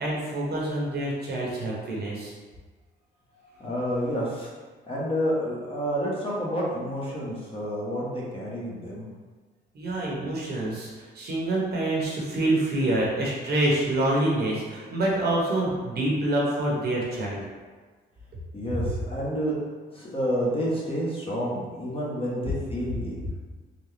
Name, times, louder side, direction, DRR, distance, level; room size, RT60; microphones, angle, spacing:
voice 1, 0.0-2.3 9.7-17.4, right 1 dB, 55° right, -4 dB, 1.1 m, -26 dB
voice 2, 3.6-4.5 4.9-9.1 18.5-19.6 19.9-23.2, equal, 30° left, -6 dB, 1.1 m, -29 dB
3.9 x 2.2 x 3.3 m, 1.4 s
cardioid pair, 90°, 20 cm